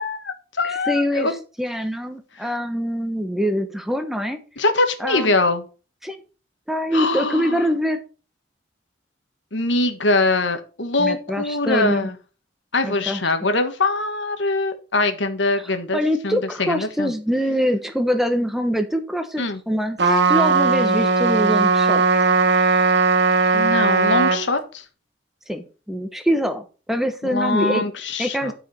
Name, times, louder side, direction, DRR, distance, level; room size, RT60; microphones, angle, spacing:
voice 1, 0.0-1.3 2.4-2.5 4.6-5.6 6.9-7.6 9.5-12.1 12.7-16.0 16.2-17.1 19.4-19.6 23.5-24.8 27.2-28.5, left 2 dB, 80° left, 8 dB, 1.6 m, -23 dB
voice 2, 0.6-4.4 5.0-5.3 6.0-6.2 6.7-8.0 11.0-12.1 12.8-13.2 15.9-22.0 25.5-27.8 28.2-28.5, equal, ahead, 7 dB, 1.0 m, -24 dB
Trumpet, 20.0-24.4, right 4 dB, 70° right, 1.7 m, -18 dB
12.0 x 5.0 x 5.4 m, 0.35 s
head